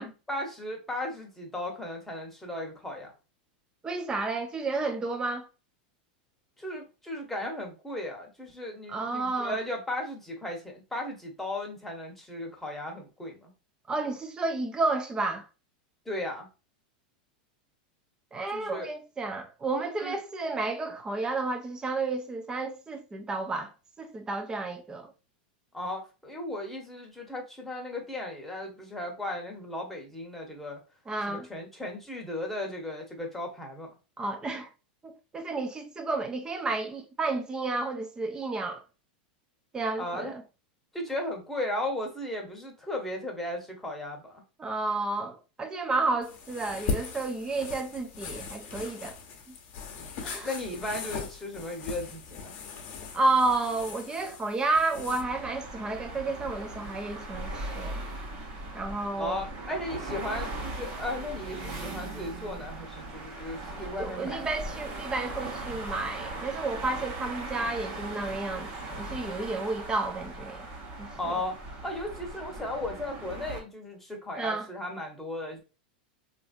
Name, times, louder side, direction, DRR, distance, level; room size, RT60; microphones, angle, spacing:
voice 1, 0.0-3.1 6.6-13.5 16.0-16.5 18.5-18.9 20.0-20.2 25.7-30.8 31.3-33.9 40.0-40.3 40.9-44.4 50.4-52.5 59.2-64.5 71.1-75.6, left 1 dB, 5° left, 1.0 m, -36 dB
voice 2, 3.8-5.5 8.9-9.6 13.9-15.5 18.3-23.7 24.0-25.1 31.1-31.5 34.2-34.7 35.0-38.8 39.7-40.4 44.6-49.2 49.5-49.6 50.2-50.5 53.1-58.0 58.7-59.4 64.0-68.7 69.0-70.7 71.0-71.3 74.4-74.7, right 3 dB, 15° right, 0.6 m, -31 dB
sound 1, 46.2-55.2, left 5 dB, 50° left, 0.8 m, -39 dB
sound 2, 55.2-73.6, right 2 dB, 45° right, 1.1 m, -39 dB
3.2 x 2.6 x 2.4 m
hypercardioid pair, 120°, 5 cm